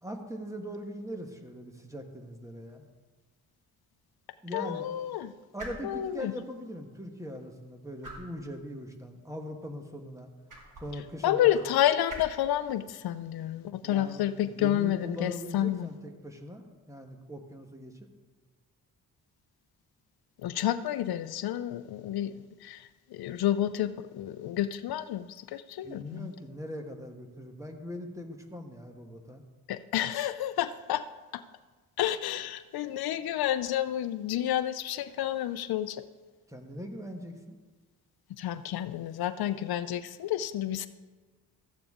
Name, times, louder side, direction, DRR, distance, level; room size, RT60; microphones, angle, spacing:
voice 1, 0.0-2.8 4.4-4.9 5.5-10.3 10.8-11.5 13.8-18.0 25.8-29.4 36.5-37.6, equal, 10° right, 4 dB, 1.3 m, -41 dB
sound 1, 2.6-16.1, right 1 dB, 55° right, 2.3 m, -52 dB
voice 2, 4.5-5.3 5.8-6.3 11.2-15.9 20.4-26.3 29.7-31.0 31.3-31.4 32.0-36.0 38.4-40.9, left 12 dB, 75° left, 13 dB, 0.5 m, -30 dB
13.5 x 8.7 x 3.6 m, 1.4 s
cardioid pair, 90°, 38 cm